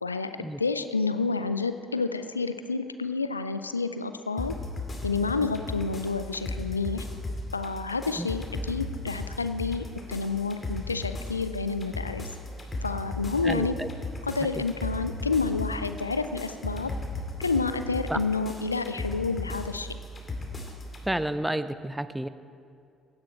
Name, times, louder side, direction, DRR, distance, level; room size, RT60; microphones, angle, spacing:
voice 1, 0.0-4.5 5.0-7.1 7.5-12.3 12.8-13.7 14.2-16.9 17.4-20.0, left 4 dB, 90° left, 10 dB, 0.4 m, -29 dB
sound 1, 4.4-21.0, left 2 dB, 30° left, 2.4 m, -36 dB
voice 2, 13.4-13.9 18.1-18.2 21.1-22.3, right 1 dB, 10° right, 13 dB, 0.6 m, -30 dB
16.0 x 10.5 x 4.5 m, 2.4 s
figure-of-eight pair, 50°, 0 cm